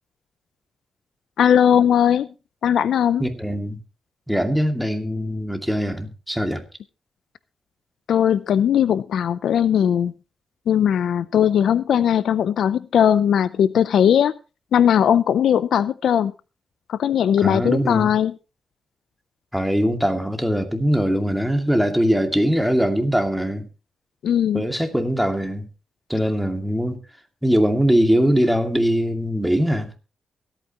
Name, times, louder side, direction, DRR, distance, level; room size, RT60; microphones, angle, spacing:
voice 1, 1.4-2.3 2.6-3.2 8.1-10.1 10.7-14.3 14.7-16.3 16.9-18.3 24.2-24.6, left 9 dB, 80° left, 0.5 m, -18 dB
voice 2, 3.2-3.8 4.3-6.6 17.4-18.1 19.5-23.7 24.5-25.7 26.1-27.0 27.4-29.9, equal, ahead, 2.3 m, -21 dB
23.0 x 9.0 x 3.0 m
cardioid pair, 80°, 0 cm